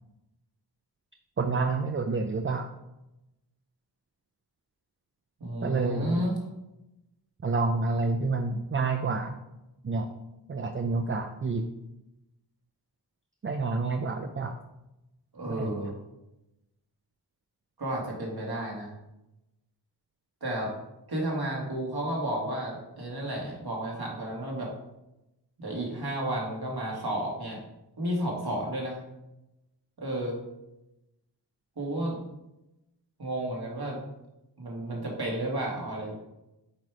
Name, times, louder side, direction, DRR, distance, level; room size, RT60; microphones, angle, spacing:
voice 1, 1.4-2.7 5.6-6.2 7.4-9.4 9.8-10.1 10.5-11.7 13.4-14.6 15.5-15.7, right 3 dB, 30° right, 6 dB, 0.5 m, -28 dB
voice 2, 5.4-6.4 15.3-15.9 17.8-18.9 20.4-20.7 21.1-24.7 25.6-27.6 28.0-29.0 30.0-30.4 31.8-32.2 33.2-34.0 34.6-36.1, right 1 dB, 60° right, -3 dB, 2.3 m, -32 dB
8.4 x 3.2 x 4.9 m, 0.94 s
wide cardioid pair, 60°, 42 cm